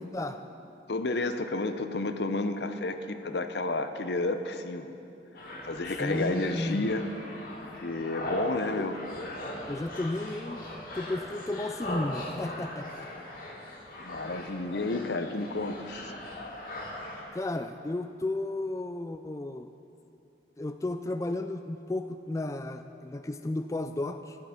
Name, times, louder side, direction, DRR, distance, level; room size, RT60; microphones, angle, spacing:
voice 1, 0.9-5.0 5.6-7.1 7.8-9.0 14.0-16.1, left 2 dB, 75° left, 9 dB, 0.8 m, -31 dB
sound 1, 5.3-17.2, left 1 dB, 50° left, 2.3 m, -39 dB
voice 2, 6.0-6.9 8.8-8.9 9.7-10.6 10.9-13.1 17.3-19.7 20.6-24.4, left 2 dB, 15° left, 8 dB, 0.3 m, -33 dB
13.5 x 11.0 x 5.8 m, 2.7 s
head